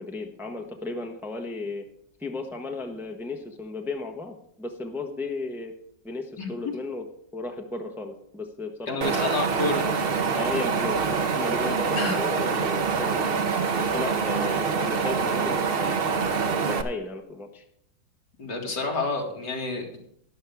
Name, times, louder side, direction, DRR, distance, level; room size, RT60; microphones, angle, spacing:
voice 1, 0.0-1.9 2.2-5.7 6.0-7.1 7.3-9.2 10.3-13.4 13.7-16.2 16.7-17.6, left 2 dB, ahead, 3 dB, 1.0 m, -34 dB
voice 2, 8.9-9.8 11.9-12.2 18.4-20.0, left 3 dB, 75° left, 0 dB, 2.9 m, -29 dB
Wind, 9.0-16.8, right 5 dB, 45° right, 0.8 m, -25 dB
13.0 x 11.0 x 3.6 m, 0.69 s
omnidirectional pair, 1.9 m